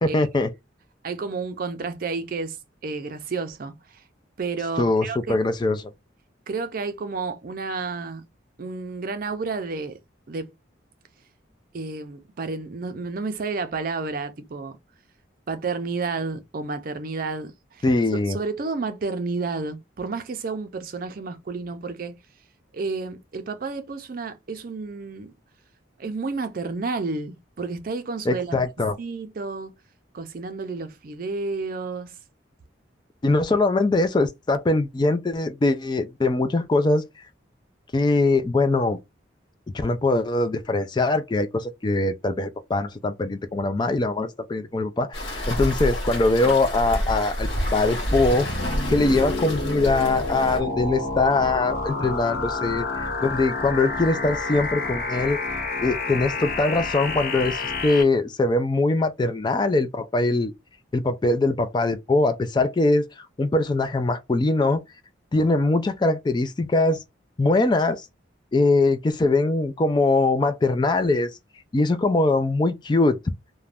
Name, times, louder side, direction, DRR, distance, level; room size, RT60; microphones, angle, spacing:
voice 1, 0.0-0.5 4.8-5.9 17.8-18.4 28.3-29.0 33.2-37.0 37.9-39.0 39.7-48.5 48.9-55.4 55.8-60.5 60.9-63.1 63.4-64.8 65.3-67.0 67.4-68.0 68.5-71.3 71.7-73.2, left 2 dB, 25° left, 0.3 m, -22 dB
voice 2, 1.0-2.6 2.8-4.0 4.4-5.4 6.5-8.3 8.6-10.0 10.3-10.5 11.7-14.8 15.5-17.8 18.3-22.2 22.7-25.3 26.0-28.6 29.0-29.7 30.1-32.1, right 4 dB, 50° right, 0.4 m, -31 dB
Waves surf, 45.1-50.6, equal, 70° left, 1.2 m, -29 dB
sound 1, 48.0-58.0, left 3 dB, 50° left, 0.7 m, -29 dB
2.5 x 2.1 x 3.3 m
head